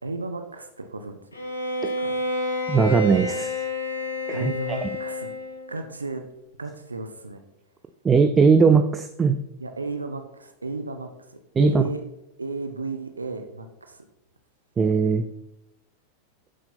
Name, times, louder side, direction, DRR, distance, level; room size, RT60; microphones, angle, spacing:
voice 1, 0.0-1.2 2.0-2.1 4.3-5.3 5.7-6.2 6.6-7.4 9.6-12.0 12.4-14.0, right 3 dB, 80° right, 6 dB, 0.9 m, -34 dB
Bowed string instrument, 1.3-5.7, left 1 dB, 80° left, 2.2 m, -29 dB
voice 2, 2.7-3.6 4.3-4.9 8.0-9.4 11.6-11.8 14.8-15.2, right 5 dB, 20° right, 8 dB, 0.6 m, -19 dB
8.6 x 7.6 x 4.3 m, 0.88 s
figure-of-eight pair, 90°, 0 cm